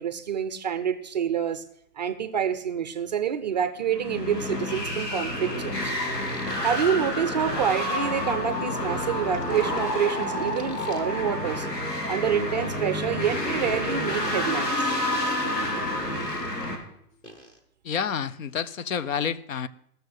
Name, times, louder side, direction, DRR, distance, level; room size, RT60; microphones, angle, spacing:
voice 1, 0.0-1.6 2.0-5.9 6.6-11.7 12.1-14.9, right 8 dB, 30° right, 0.5 m, -27 dB
sound 1, 3.1-3.2 5.7-6.8 9.3-11.1 13.2-16.7 17.2-17.6, equal, 10° left, 0.7 m, -40 dB
sound 2, 3.9-16.8, left 1 dB, 80° left, 4.3 m, -29 dB
Wind instrument woodwind instrument, 8.0-11.8, left 1 dB, 40° left, 4.5 m, -37 dB
voice 2, 17.8-19.7, left 7 dB, 55° left, 0.8 m, -29 dB
15.5 x 6.8 x 7.9 m
hypercardioid pair, 140°, 47 cm